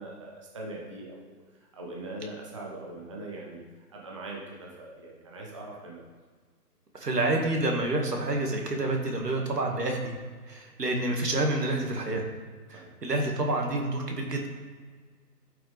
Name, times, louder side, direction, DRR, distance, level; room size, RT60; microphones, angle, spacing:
voice 1, 0.0-1.4 1.7-3.6 3.9-6.0 12.7-12.9, right 2 dB, 20° right, -2 dB, 0.8 m, -41 dB
voice 2, 6.9-10.1 10.5-12.2 12.7-14.5, right 2 dB, 75° right, 1 dB, 2.1 m, -28 dB
13.0 x 5.9 x 3.4 m, 1.5 s
figure-of-eight pair, 150°, 48 cm